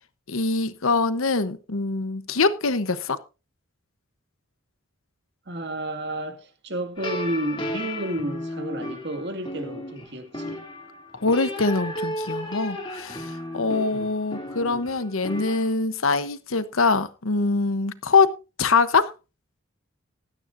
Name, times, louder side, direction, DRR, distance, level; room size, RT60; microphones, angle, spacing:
voice 1, 0.3-3.2 11.1-19.1, left 4 dB, 75° left, 1.0 m, -23 dB
voice 2, 5.5-10.6 13.9-14.1, right 1 dB, 55° right, 2.2 m, -31 dB
sound 1, 7.0-15.6, left 1 dB, 25° left, 2.7 m, -34 dB
16.5 x 12.5 x 2.6 m
head